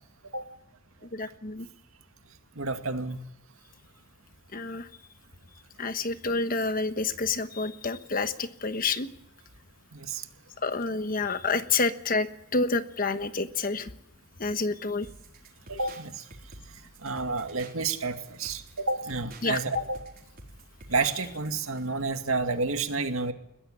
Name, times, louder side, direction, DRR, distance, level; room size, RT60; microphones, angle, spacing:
voice 1, 1.1-1.7 4.5-4.9 5.8-9.1 10.6-13.9 14.4-15.1 19.4-19.8, left 3 dB, 40° left, 11 dB, 1.2 m, -29 dB
voice 2, 2.6-3.2 9.9-10.2 15.7-16.2 17.0-20.0 20.9-23.3, right 3 dB, 85° right, 7 dB, 2.2 m, -30 dB
sound 1, 15.0-21.9, right 2 dB, 45° right, 4.7 m, -50 dB
21.0 x 15.5 x 9.9 m, 0.81 s
head